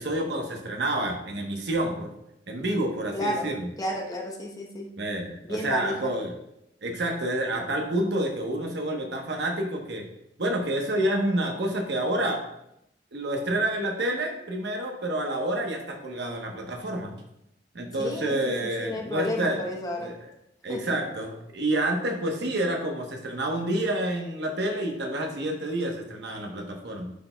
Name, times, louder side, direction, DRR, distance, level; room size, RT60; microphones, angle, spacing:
voice 1, 0.0-2.1 2.5-3.7 5.0-6.3 6.8-10.1 10.4-12.4 13.1-17.2 17.7-19.6 20.0-20.1 20.6-27.1, right 1 dB, 70° right, 2 dB, 1.0 m, -28 dB
voice 2, 3.1-3.5 3.8-4.9 5.4-6.1 18.0-20.1 20.7-20.8, left 1 dB, 20° left, 0 dB, 0.9 m, -32 dB
10.0 x 4.4 x 2.2 m, 0.81 s
head